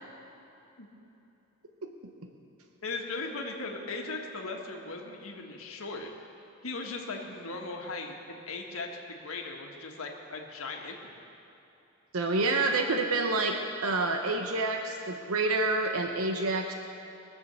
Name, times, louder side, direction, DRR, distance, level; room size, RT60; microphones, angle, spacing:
voice 1, 2.8-6.1 6.6-10.9, left 3 dB, 70° left, 1 dB, 1.6 m, -38 dB
voice 2, 12.1-16.7, right 3 dB, 85° right, 4 dB, 0.9 m, -28 dB
21.5 x 7.2 x 6.9 m, 3.0 s
head